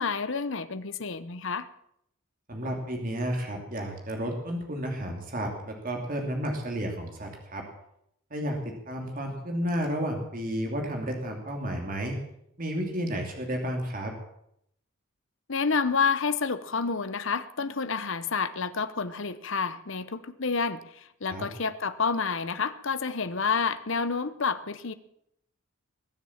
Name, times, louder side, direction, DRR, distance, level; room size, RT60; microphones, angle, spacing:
voice 1, 0.0-1.7 15.5-24.9, left 5 dB, 55° left, 13 dB, 0.9 m, -29 dB
voice 2, 2.5-7.7 8.3-12.2 12.6-14.1 21.3-21.5, equal, 40° right, 2 dB, 2.8 m, -32 dB
21.5 x 7.3 x 7.3 m, 0.75 s
head